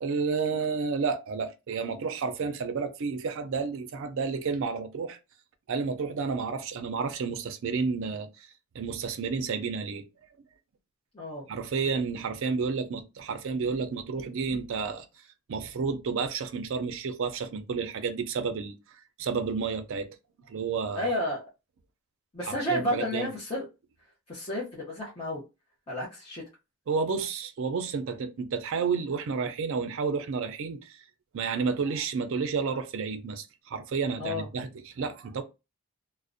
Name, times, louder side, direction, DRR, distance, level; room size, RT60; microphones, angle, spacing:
voice 1, 0.0-5.2 5.7-8.5 8.7-10.0 11.5-15.1 15.5-18.7 19.2-20.1 20.4-21.1 22.5-23.3 26.9-31.0 31.3-35.4, right 5 dB, 60° right, 0.4 m, -31 dB
voice 2, 11.1-11.5 20.9-21.4 22.3-23.7 24.3-25.4 25.9-26.4 34.2-34.5, left 1 dB, 25° left, 0.6 m, -31 dB
2.4 x 2.0 x 2.5 m
head